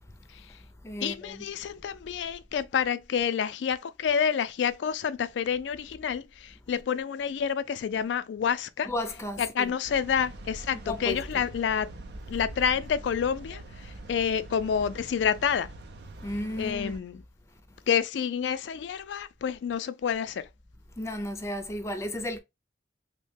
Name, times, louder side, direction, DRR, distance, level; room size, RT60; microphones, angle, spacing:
voice 1, 0.2-1.4 8.9-9.7 10.9-11.4 16.2-16.9 21.0-22.4, left 1 dB, 15° left, 0.5 m, -34 dB
voice 2, 1.0-8.9 9.4-11.9 12.3-15.7 16.6-17.2 17.9-20.5, left 7 dB, 85° left, 0.3 m, -28 dB
sound 1, 9.8-17.0, right 2 dB, 65° right, 0.5 m, -43 dB
3.1 x 2.1 x 3.2 m
head